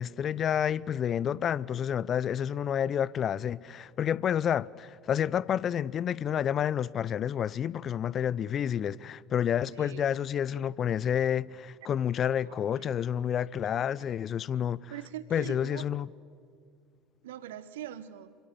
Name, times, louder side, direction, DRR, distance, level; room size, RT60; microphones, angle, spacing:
voice 1, 0.0-14.9 15.3-16.1, left 9 dB, 40° left, 0.6 m, -29 dB
voice 2, 9.7-10.2 12.4-12.6 14.9-15.8 17.2-18.3, right 11 dB, 70° right, 0.9 m, -42 dB
27.0 x 24.5 x 7.0 m
figure-of-eight pair, 70°, 0 cm